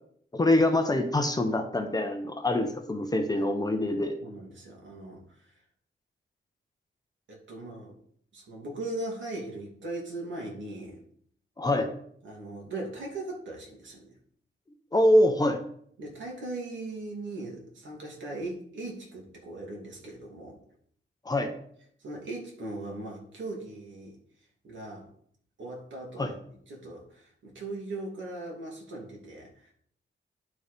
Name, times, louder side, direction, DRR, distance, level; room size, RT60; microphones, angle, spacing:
voice 1, 0.3-4.1 11.6-11.9 14.9-15.6 21.2-21.5 26.2-26.3, left 1 dB, 20° left, 5 dB, 0.8 m, -24 dB
voice 2, 4.2-5.6 7.3-7.9 8.3-11.0 12.2-14.1 16.0-20.6 22.0-24.2 24.6-25.1 25.6-29.7, right 2 dB, 70° right, -1 dB, 2.8 m, -39 dB
10.5 x 4.7 x 5.1 m, 0.64 s
wide cardioid pair, 180°, 20 cm